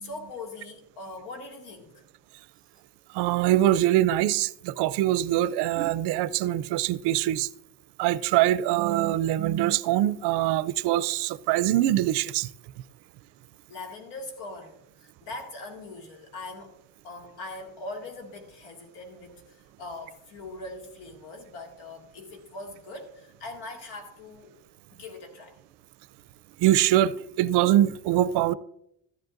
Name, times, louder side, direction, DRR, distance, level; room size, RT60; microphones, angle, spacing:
voice 1, 0.0-2.1 13.7-16.7 17.0-24.5 24.9-25.6, left 2 dB, 85° left, 2.2 m, -41 dB
voice 2, 3.1-7.5 8.0-12.5 26.6-28.5, right 13 dB, 80° right, 0.5 m, -23 dB
13.5 x 10.5 x 2.5 m
cardioid pair, 150°, 39 cm